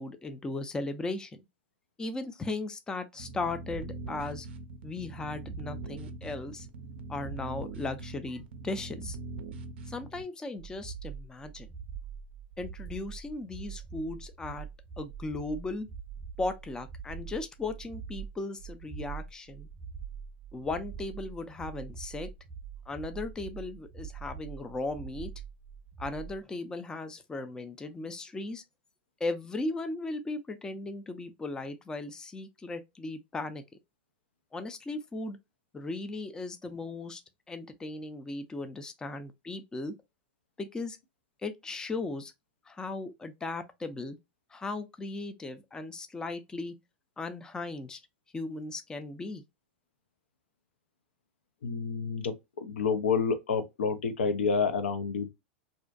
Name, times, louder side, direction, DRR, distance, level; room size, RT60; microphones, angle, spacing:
voice 1, 0.0-1.4 2.0-4.5 4.8-6.7 7.1-9.2 9.9-11.7 12.6-14.7 15.0-15.9 16.4-19.7 20.5-22.3 22.9-25.3 26.0-28.6 29.2-33.6 34.5-35.4 35.7-37.2 37.5-39.9 40.6-41.0 41.4-42.3 42.7-44.2 44.5-46.7 47.2-48.0 48.3-49.4, left 2 dB, 10° left, 0.3 m, -37 dB
sound 1, 3.2-10.2, right 3 dB, 70° right, 0.4 m, -41 dB
sound 2, 10.6-26.4, right 7 dB, 30° right, 0.8 m, -44 dB
voice 2, 51.6-55.3, left 5 dB, 80° left, 0.5 m, -29 dB
2.5 x 2.1 x 2.4 m
hypercardioid pair, 105°, 6 cm